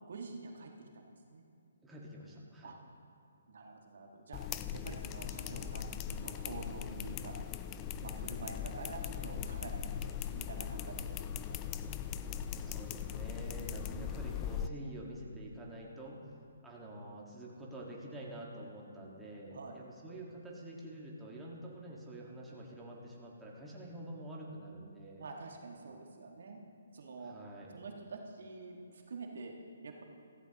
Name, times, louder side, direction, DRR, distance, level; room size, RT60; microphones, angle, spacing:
voice 1, 0.0-1.4 2.6-2.7 3.5-4.4 4.7-7.3 8.0-9.8 10.2-10.9 11.5-11.7 19.5-19.8 25.2-26.6 26.9-27.3 27.7-29.5 29.8-30.0, right 3 dB, 65° right, 1 dB, 1.5 m, -47 dB
voice 2, 1.8-2.8 8.1-8.6 12.6-16.2 16.6-25.2 27.2-27.8, right 1 dB, 5° right, -4 dB, 1.6 m, -47 dB
sound 1, 4.3-14.7, left 8 dB, 20° left, 0.4 m, -40 dB
16.0 x 15.0 x 3.0 m, 2.5 s
hypercardioid pair, 150°, 0 cm